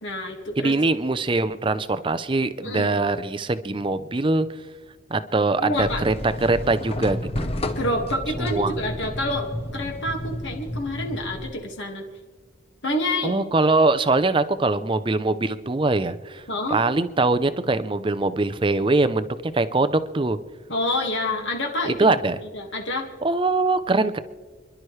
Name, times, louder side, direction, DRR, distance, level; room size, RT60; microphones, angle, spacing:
voice 1, 0.0-0.7 2.6-3.0 5.6-6.0 7.8-12.1 12.8-13.3 16.5-16.8 20.7-22.1 22.5-23.1, left 1 dB, 65° left, 2 dB, 1.9 m, -27 dB
voice 2, 0.6-4.5 5.1-7.5 8.4-8.7 13.2-16.4 16.7-20.4 21.8-22.4 23.2-24.2, right 3 dB, 25° right, 12 dB, 0.5 m, -22 dB
sound 1, 5.8-11.5, left 1 dB, 30° left, 0.9 m, -31 dB
29.5 x 11.5 x 3.2 m, 1.4 s
head